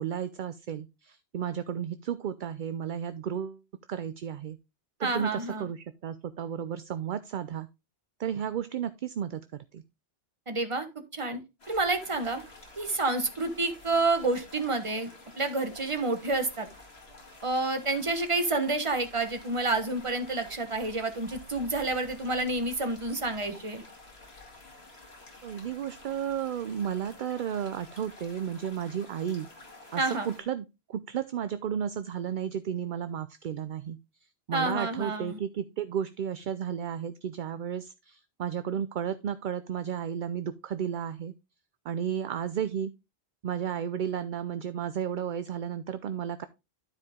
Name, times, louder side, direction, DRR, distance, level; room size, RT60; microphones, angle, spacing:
voice 1, 0.0-3.6 3.9-4.6 5.0-7.7 8.2-9.8 25.4-29.5 29.9-41.3 41.8-42.9 43.4-46.5, right 8 dB, 60° right, 12 dB, 0.6 m, -33 dB
voice 2, 5.0-5.6 10.5-10.9 11.1-11.4 11.7-12.4 12.8-15.1 15.4-16.7 17.4-23.8 30.0-30.3 34.5-35.4, right 2 dB, 30° right, 7 dB, 1.3 m, -29 dB
sound 1, 11.6-30.4, left 2 dB, 75° left, 2.4 m, -50 dB
12.5 x 4.9 x 3.5 m, 0.25 s
omnidirectional pair, 1.1 m